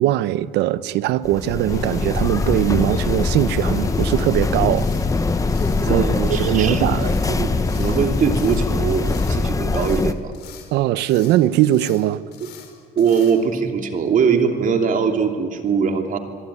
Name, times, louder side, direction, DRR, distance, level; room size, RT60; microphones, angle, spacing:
voice 1, 0.0-4.9 5.8-6.0 6.3-7.1 10.7-12.2, right 14 dB, 85° right, 0.9 m, -20 dB
sound 1, 1.2-10.1, left 3 dB, 20° left, 1.1 m, -22 dB
sound 2, 1.7-9.5, left 3 dB, 50° left, 2.9 m, -30 dB
sound 3, 4.8-5.1 5.5-5.9 6.2-6.6 7.0-7.3 7.6-8.0 8.3-8.7 9.0-9.4 9.7-10.7 11.0-11.4 11.6-12.0 12.3-12.7 13.0-13.3, left 10 dB, 75° left, 4.5 m, -45 dB
voice 2, 5.9-10.3 12.4-12.5 13.0-16.2, right 6 dB, 50° right, 2.9 m, -21 dB
26.0 x 22.0 x 9.8 m
cardioid pair, 110°, 17 cm